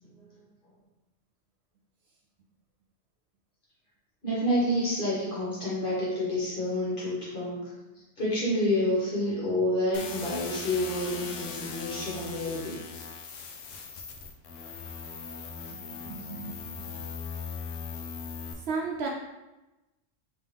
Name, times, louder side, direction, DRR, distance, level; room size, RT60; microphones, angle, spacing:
voice 1, 4.2-7.7 8.2-12.8 13.9-14.0, left 1 dB, 45° left, -7 dB, 1.5 m, -29 dB
sound 1, 9.9-18.5, left 5 dB, 85° left, 1.0 m, -39 dB
voice 2, 15.7-16.9 18.5-19.1, right 4 dB, 65° right, -1 dB, 0.7 m, -35 dB
3.6 x 3.0 x 3.4 m, 1.0 s
omnidirectional pair, 1.3 m